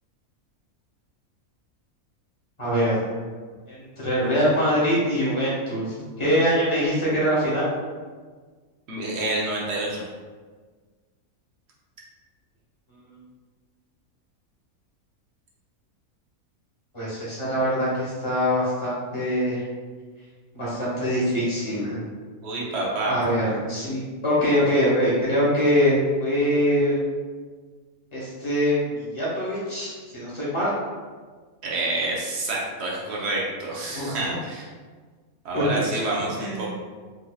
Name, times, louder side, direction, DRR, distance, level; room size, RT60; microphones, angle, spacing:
voice 1, 2.6-3.1 3.7-7.7 16.9-19.6 20.5-22.0 23.1-27.0 28.1-30.7 33.9-34.4 35.5-35.8 36.4-36.7, equal, 25° left, -8 dB, 1.0 m, -23 dB
voice 2, 8.9-10.0 22.4-23.2 31.6-34.7 35.4-36.7, right 2 dB, 55° right, -4 dB, 0.9 m, -28 dB
4.0 x 2.6 x 2.3 m, 1.5 s
omnidirectional pair, 1.5 m